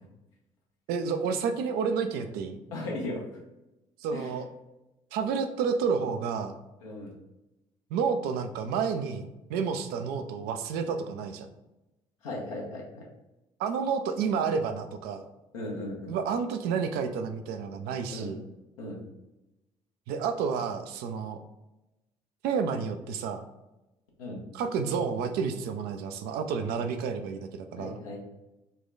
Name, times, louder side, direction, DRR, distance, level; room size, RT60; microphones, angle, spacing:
voice 1, 0.9-2.6 4.0-4.5 5.1-6.6 7.9-11.5 13.6-15.3 16.1-18.4 20.1-21.4 22.4-23.5 24.5-28.0, right 6 dB, 65° right, 7 dB, 0.5 m, -30 dB
voice 2, 2.7-3.2 4.1-4.3 6.8-7.1 12.2-13.0 15.5-16.1 18.1-18.3 18.8-19.0 24.2-24.4 27.8-28.3, left 1 dB, 80° left, -3 dB, 1.0 m, -36 dB
4.1 x 2.3 x 3.9 m, 0.97 s
hypercardioid pair, 50°, 17 cm